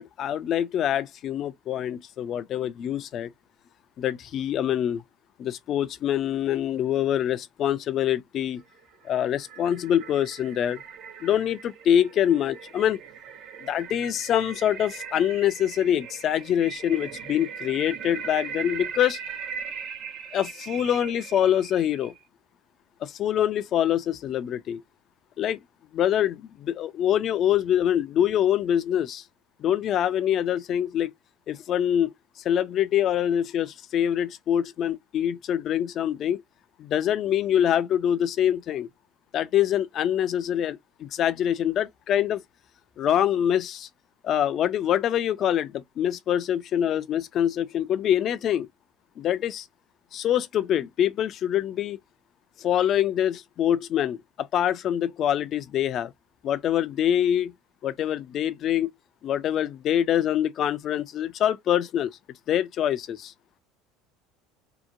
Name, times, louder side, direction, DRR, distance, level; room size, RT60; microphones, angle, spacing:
voice 1, 0.0-3.3 4.0-5.0 5.4-8.6 9.0-10.8 11.2-13.0 13.6-19.2 20.3-22.1 23.0-24.8 25.4-25.6 25.9-29.2 29.6-31.1 31.5-32.1 32.4-36.4 36.8-38.9 39.3-42.4 43.0-43.9 44.2-48.7 49.2-49.7 50.1-52.0 52.6-56.1 56.4-57.5 57.8-58.9 59.2-62.2 62.5-63.3, left 10 dB, 45° left, 0.4 m, -25 dB
sound 1, 8.8-22.2, right 7 dB, 55° right, 0.7 m, -39 dB
2.8 x 2.2 x 2.5 m
supercardioid pair, 105°, 0 cm